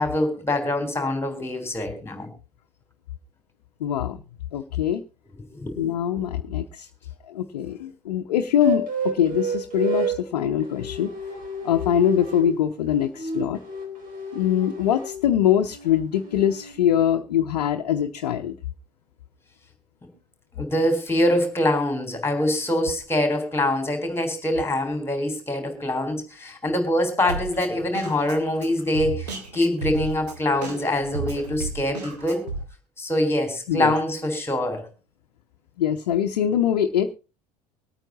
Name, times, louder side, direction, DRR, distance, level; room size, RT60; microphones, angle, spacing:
voice 1, 0.0-2.3 5.6-5.8 6.2-6.3 20.5-32.4 33.0-34.9, left 1 dB, 10° left, 6 dB, 3.7 m, -24 dB
voice 2, 3.8-4.2 4.5-5.0 5.8-6.9 7.3-11.1 11.6-13.6 14.3-18.6 33.7-33.9 35.8-37.1, left 9 dB, 70° left, 5 dB, 0.8 m, -23 dB
sound 1, 8.6-10.2 10.6-12.6 12.9-15.2 15.7-16.7, right 3 dB, 40° right, 4.2 m, -31 dB
Drum kit, 27.3-32.6, right 3 dB, 75° right, 2.1 m, -33 dB
24.5 x 9.0 x 2.9 m, 0.31 s
figure-of-eight pair, 65°, 20 cm